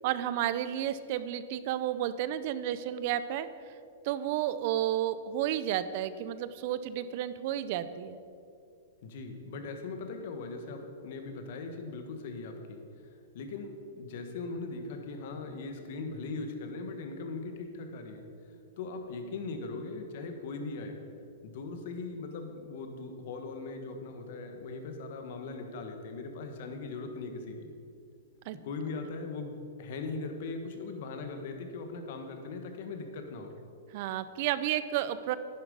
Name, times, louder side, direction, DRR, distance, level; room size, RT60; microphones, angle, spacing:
voice 1, 0.0-3.5 4.0-8.2 28.5-28.6 33.9-35.4, right 11 dB, 45° right, 14 dB, 0.6 m, -31 dB
voice 2, 9.0-12.8 13.3-18.2 18.8-21.0 21.4-27.7 28.6-33.5, left 3 dB, 55° left, 5 dB, 1.6 m, -39 dB
10.5 x 10.0 x 5.5 m, 2.5 s
hypercardioid pair, 155°, 0 cm